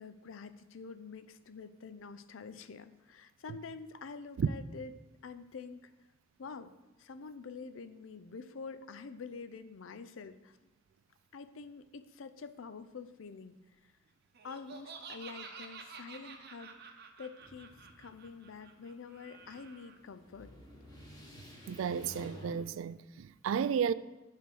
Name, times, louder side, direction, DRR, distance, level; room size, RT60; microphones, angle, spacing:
voice 1, 0.0-4.9 5.2-5.9 6.4-6.7 7.0-10.7 11.3-13.6 13.8-13.9 14.4-20.5, left 5 dB, 75° left, 0.5 m, -47 dB
Laughter, 14.3-19.9, right 5 dB, 55° right, 0.8 m, -50 dB
sound 1, 17.4-22.6, left 1 dB, 20° left, 1.5 m, -53 dB
voice 2, 21.7-23.9, right 7 dB, 75° right, 0.3 m, -32 dB
9.1 x 3.4 x 6.2 m
head